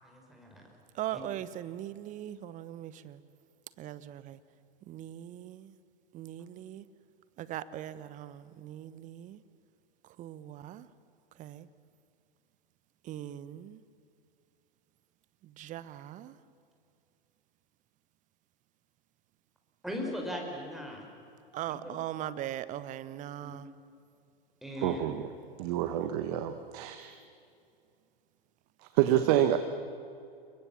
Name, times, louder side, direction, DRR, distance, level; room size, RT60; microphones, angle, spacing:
voice 1, 0.0-0.6 1.1-1.2 19.8-21.1 21.7-21.9 23.4-23.6 24.6-25.2 29.1-29.2, left 1 dB, ahead, 0 dB, 5.6 m, -39 dB
voice 2, 0.9-3.2 3.8-4.4 4.9-5.7 6.1-6.8 7.4-9.4 10.2-10.9 11.4-11.7 13.0-13.8 15.6-16.3 21.5-23.7 29.1-29.2, right 12 dB, 25° right, 16 dB, 1.0 m, -40 dB
voice 3, 24.8-25.2 25.6-27.1 28.9-29.6, right 12 dB, 40° right, 9 dB, 1.3 m, -27 dB
29.0 x 23.0 x 7.3 m, 2.5 s
figure-of-eight pair, 100°, 30 cm